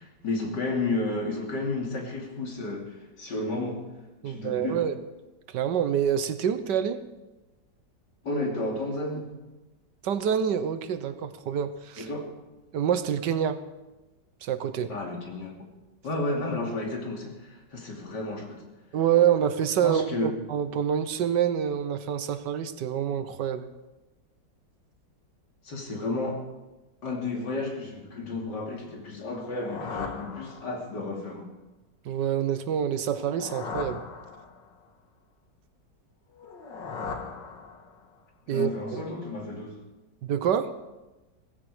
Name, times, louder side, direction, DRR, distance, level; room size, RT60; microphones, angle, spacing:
voice 1, 0.0-3.8 4.2-4.8 8.2-9.3 12.0-12.3 14.9-15.7 16.0-18.6 19.8-20.3 25.6-26.4 27.0-31.5 38.5-39.8, left 2 dB, 70° left, 1 dB, 3.3 m, -32 dB
voice 2, 4.2-5.0 5.5-7.0 10.0-12.1 12.7-13.6 14.4-14.9 18.9-23.7 32.0-34.0 38.5-39.0 40.2-40.7, right 9 dB, 75° right, 11 dB, 1.5 m, -27 dB
sound 1, 29.2-31.1 33.0-34.9 36.3-38.2, left 4 dB, 90° left, 2.2 m, -39 dB
17.5 x 16.0 x 4.9 m, 1.1 s
omnidirectional pair, 1.9 m